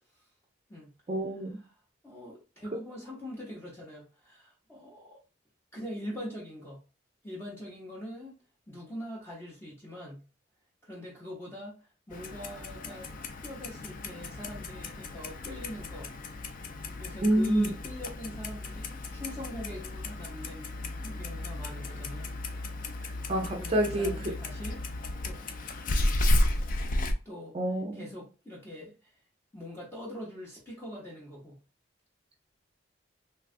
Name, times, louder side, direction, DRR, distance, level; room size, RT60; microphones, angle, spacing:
voice 1, 1.1-1.6 17.2-17.7 23.3-24.3 27.5-28.2, right 1 dB, 30° right, 0.4 m, -28 dB
voice 2, 2.0-5.2 5.7-6.8 7.2-8.4 8.7-10.3 10.8-13.1 13.4-16.2 16.9-22.3 23.6-25.4 26.0-26.2 27.2-27.6 27.9-29.2 29.5-31.6, equal, 10° left, 0.7 m, -43 dB
Clock, 12.1-27.1, left 1 dB, 45° left, 0.4 m, -33 dB
3.1 x 2.3 x 2.5 m
head